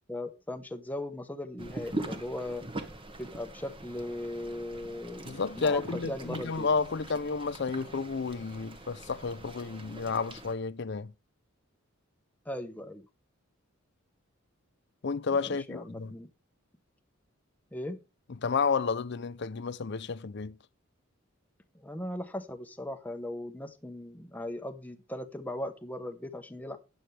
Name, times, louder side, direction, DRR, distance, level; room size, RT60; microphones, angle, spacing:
voice 1, 0.1-2.6 3.2-6.7 12.4-13.0 15.3-16.3 17.7-18.0 21.7-26.8, left 1 dB, 10° left, 0.9 m, -38 dB
sound 1, 1.6-10.5, right 2 dB, 25° right, 1.3 m, -42 dB
voice 2, 5.3-11.1 15.0-16.1 18.4-20.6, left 4 dB, 55° left, 0.5 m, -31 dB
12.5 x 9.3 x 3.4 m
head